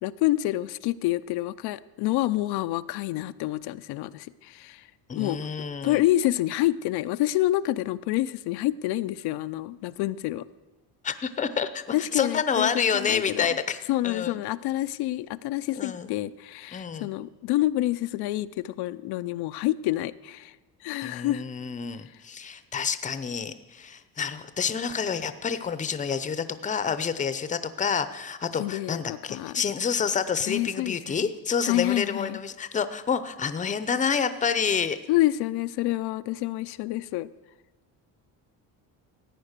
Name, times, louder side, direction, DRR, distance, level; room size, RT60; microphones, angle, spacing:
voice 1, 0.0-4.9 5.1-5.4 5.8-10.5 11.9-13.5 13.9-20.6 20.8-21.4 28.6-29.6 30.5-31.3 31.6-32.4 35.1-37.3, left 15 dB, 80° left, 12 dB, 0.6 m, -28 dB
voice 2, 5.1-6.0 11.0-13.8 14.0-14.4 15.7-16.1 16.7-17.1 21.0-35.0, left 6 dB, 20° left, 12 dB, 0.7 m, -28 dB
14.5 x 9.6 x 6.6 m, 1.2 s
cardioid pair, 135°, 38 cm